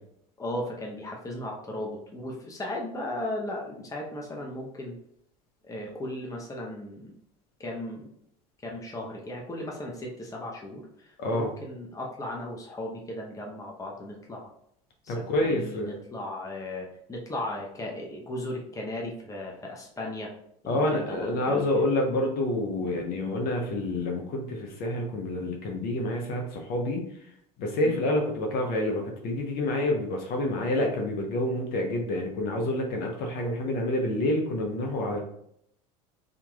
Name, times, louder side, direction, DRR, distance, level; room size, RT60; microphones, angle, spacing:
voice 1, 0.4-5.0 5.6-7.1 7.6-8.1 8.6-14.5 15.0-20.3 20.6-21.9 27.8-28.0, left 1 dB, 15° left, -1 dB, 0.8 m, -36 dB
voice 2, 11.2-11.5 15.1-15.9 20.7-27.1 27.6-35.2, left 1 dB, 55° left, 2 dB, 0.9 m, -28 dB
3.7 x 2.9 x 2.4 m, 0.70 s
hypercardioid pair, 75°, 19 cm